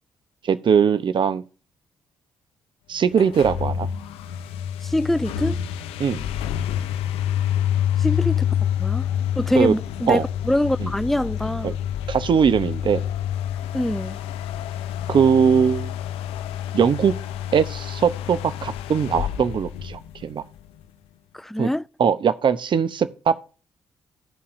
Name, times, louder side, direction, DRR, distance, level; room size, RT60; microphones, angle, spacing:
voice 1, 0.4-1.4 2.9-3.9 6.0-6.3 9.5-9.7 10.1-10.2 10.8-10.9 11.6-11.7 12.1-13.1 15.1-16.0 16.7-17.2 17.5-20.4 21.6-21.7 22.0-23.3, right 7 dB, 55° right, 0.9 m, -20 dB
sound 1, 3.1-20.6, left 10 dB, 85° left, 0.6 m, -28 dB
voice 2, 4.8-5.6 8.0-9.1 9.4-11.7 13.7-14.2 21.3-21.8, left 1 dB, 5° left, 0.4 m, -24 dB
16.0 x 5.6 x 2.6 m
supercardioid pair, 55°, 10 cm